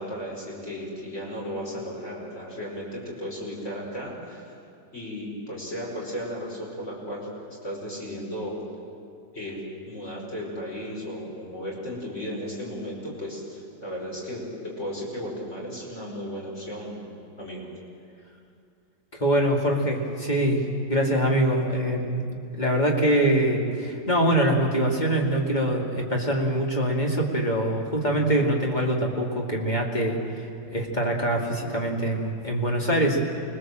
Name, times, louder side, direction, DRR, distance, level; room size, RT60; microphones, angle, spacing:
voice 1, 0.0-4.4 4.9-8.6 9.3-17.0 17.4-17.7, equal, 40° left, -3 dB, 5.6 m, -35 dB
voice 2, 19.1-20.6 20.9-22.2 22.6-33.2, right 1 dB, 25° left, 0 dB, 2.7 m, -24 dB
25.0 x 21.5 x 7.7 m, 2.4 s
omnidirectional pair, 1.9 m